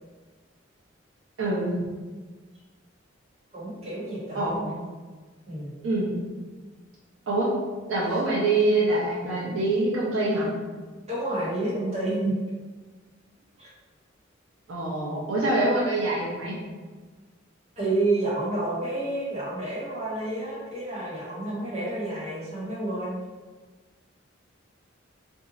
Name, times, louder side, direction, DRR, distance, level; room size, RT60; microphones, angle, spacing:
voice 1, 1.4-1.8 4.3-4.8 5.8-6.2 7.3-7.5 7.9-10.5 14.7-16.6, right 2 dB, 90° right, -5 dB, 0.8 m, -25 dB
voice 2, 3.5-4.7 5.5-5.7 11.1-12.4 13.6-13.7 17.8-23.2, right 2 dB, 35° right, -9 dB, 1.3 m, -29 dB
2.7 x 2.4 x 4.0 m, 1.4 s
head